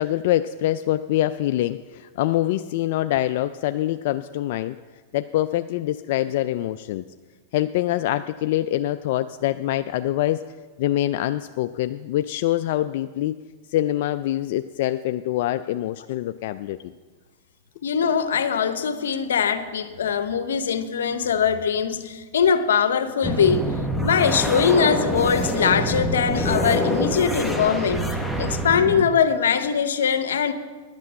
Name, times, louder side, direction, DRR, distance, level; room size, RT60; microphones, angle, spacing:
voice 1, 0.0-4.8 5.1-7.0 7.5-10.4 10.8-13.3 13.7-16.9 26.5-26.6 27.5-27.6, left 14 dB, 60° left, 10 dB, 0.3 m, -25 dB
voice 2, 17.8-23.8 24.0-28.0 28.4-30.5, left 7 dB, 90° left, 11 dB, 0.8 m, -22 dB
sound 1, 23.2-29.0, equal, 5° right, 1.1 m, -25 dB
11.0 x 8.3 x 6.3 m, 1.4 s
hypercardioid pair, 125°, 0 cm